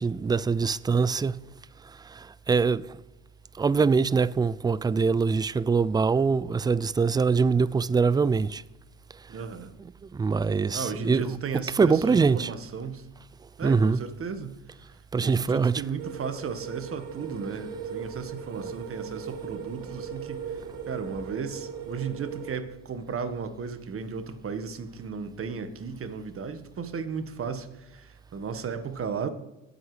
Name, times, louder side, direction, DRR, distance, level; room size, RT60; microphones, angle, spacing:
voice 1, 0.0-1.4 2.1-3.0 3.6-8.6 9.8-11.4 11.8-12.5 13.6-14.0 15.1-15.7, right 5 dB, 15° right, 0.3 m, -23 dB
voice 2, 9.3-9.7 10.7-13.1 13.6-14.6 15.2-20.6 20.9-29.3, right 6 dB, 40° right, 1.5 m, -35 dB
sound 1, 16.0-22.6, right 7 dB, 70° right, 1.5 m, -38 dB
19.0 x 8.0 x 3.3 m
hypercardioid pair, 70°, 34 cm